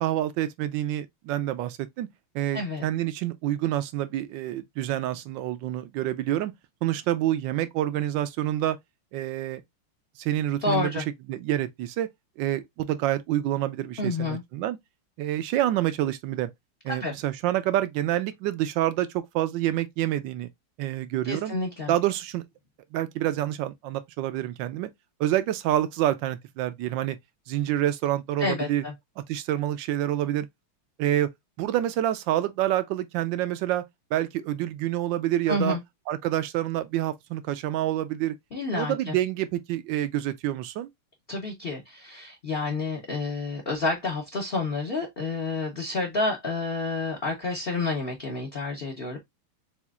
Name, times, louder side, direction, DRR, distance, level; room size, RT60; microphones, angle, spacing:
voice 1, 0.0-2.1 2.3-6.5 6.8-8.8 9.1-9.6 10.2-12.1 12.4-14.8 15.2-16.5 16.8-20.5 20.8-21.5 21.9-22.4 22.9-24.9 25.2-27.2 27.5-28.8 29.2-30.5 31.0-31.3 31.6-33.8 34.1-35.8 36.1-38.3 38.7-40.9, right 13 dB, 75° right, 1.1 m, -27 dB
voice 2, 2.5-2.8 10.6-11.0 14.0-14.4 16.9-17.1 21.3-21.9 28.4-28.9 35.5-35.8 38.5-39.1 41.3-49.2, left 3 dB, 50° left, 0.6 m, -29 dB
7.0 x 2.5 x 2.3 m
omnidirectional pair, 2.4 m